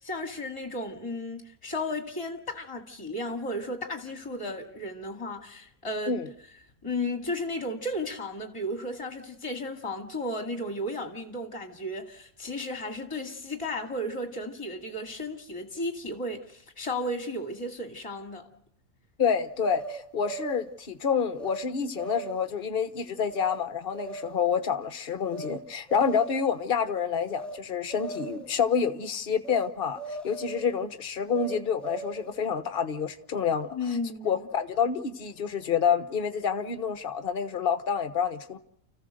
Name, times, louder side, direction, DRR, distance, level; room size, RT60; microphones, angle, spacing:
voice 1, 0.0-6.2 6.8-18.4 33.7-34.5, left 1 dB, 20° left, 2.2 m, -34 dB
voice 2, 19.2-33.7 34.2-38.6, left 6 dB, 40° left, 1.2 m, -28 dB
sound 1, 19.6-20.7 21.4-21.7 21.9-22.6 23.3-23.6 23.9-24.5 25.3-25.6 25.9-26.5 27.3-27.6 27.9-28.5 29.4-29.7 29.9-30.8 31.3-32.3, right 4 dB, ahead, 1.4 m, -39 dB
30.0 x 15.0 x 6.5 m
omnidirectional pair, 1.5 m